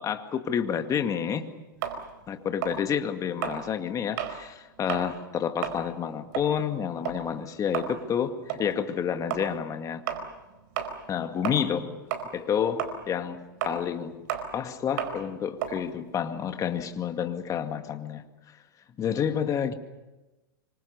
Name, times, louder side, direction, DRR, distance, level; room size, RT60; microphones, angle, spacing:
voice 1, 0.0-1.5 2.3-10.0 11.1-11.9 12.3-14.2 14.5-18.2 19.0-19.7, left 8 dB, 30° left, 7 dB, 2.2 m, -29 dB
sound 1, 1.8-4.4 4.8-5.1 5.5-11.8 12.1-16.9, right 9 dB, 60° right, 4.6 m, -34 dB
26.5 x 25.5 x 6.8 m, 1.1 s
hypercardioid pair, 120°, 12 cm